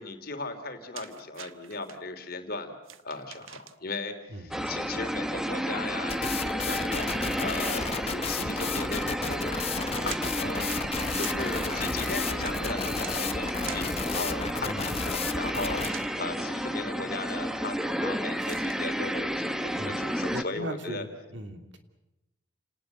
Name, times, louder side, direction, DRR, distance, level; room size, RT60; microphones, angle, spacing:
voice 1, 0.0-2.8 3.0-9.7 10.0-10.7 11.1-21.0, left 3 dB, 50° left, 6 dB, 3.2 m, -37 dB
sound 1, 0.9-2.0 2.8-4.0 5.8-8.0 9.4-14.1 15.8-16.2 18.3-18.8, right 9 dB, 90° right, 1.1 m, -45 dB
voice 2, 4.3-4.7 14.6-15.0 19.8-20.1 20.3-21.8, equal, 65° right, 6 dB, 2.9 m, -39 dB
sound 2, 4.5-20.4, equal, 5° right, 1.1 m, -31 dB
sound 3, 6.1-15.9, left 5 dB, 30° left, 1.1 m, -33 dB
29.5 x 19.5 x 8.0 m, 0.95 s
head